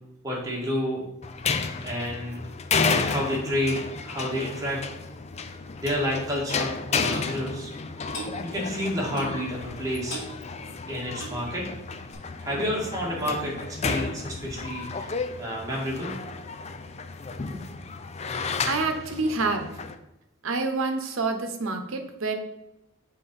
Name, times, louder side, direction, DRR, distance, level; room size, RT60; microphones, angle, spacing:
voice 1, 0.2-1.0 1.8-2.4 2.8-4.8 5.8-7.7 8.4-10.2 10.9-11.7 12.4-16.1, equal, 15° right, -4 dB, 1.9 m, -30 dB
sound 1, 1.2-19.9, left 4 dB, 30° left, 0.4 m, -32 dB
Clock, 7.1-7.3 8.1-8.3 9.1-9.4 10.1-10.3 11.1-11.4 12.1-12.2, equal, 65° left, 2.4 m, -37 dB
voice 2, 18.7-19.7 20.4-22.3, right 3 dB, 75° right, 5 dB, 1.0 m, -27 dB
7.0 x 4.2 x 5.4 m, 0.89 s
head